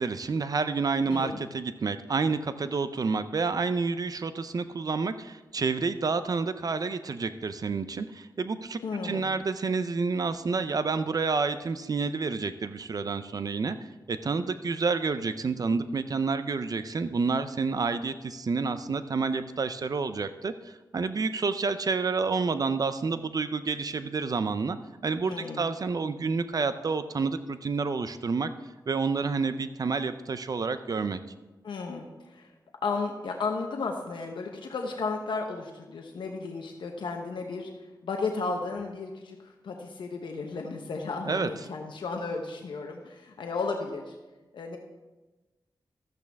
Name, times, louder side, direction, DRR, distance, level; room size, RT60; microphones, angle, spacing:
voice 1, 0.0-13.8 14.1-24.8 25.0-28.5 28.9-31.2 41.3-41.5, right 4 dB, 50° right, 11 dB, 0.5 m, -29 dB
voice 2, 1.1-1.4 8.8-9.3 25.3-25.6 31.6-32.5 32.8-37.7 38.0-44.1 44.5-44.8, left 4 dB, 90° left, 2 dB, 0.9 m, -34 dB
13.0 x 8.5 x 3.5 m, 1.2 s
wide cardioid pair, 95°, 8 cm